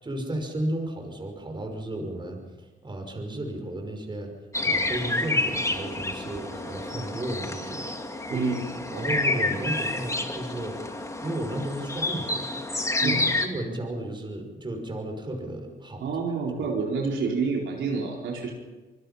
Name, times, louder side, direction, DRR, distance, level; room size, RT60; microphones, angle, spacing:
voice 1, 0.0-4.3 4.7-8.5 8.9-10.8 11.2-16.7, right 1 dB, 25° right, 3 dB, 5.5 m, -34 dB
sound 1, 4.5-13.5, left 2 dB, 15° left, 2.5 m, -29 dB
voice 2, 8.3-8.6 8.9-9.1 13.0-13.3 16.0-18.5, right 4 dB, 70° right, -1 dB, 4.3 m, -28 dB
25.5 x 20.5 x 5.7 m, 1.2 s
cardioid pair, 90°, 20 cm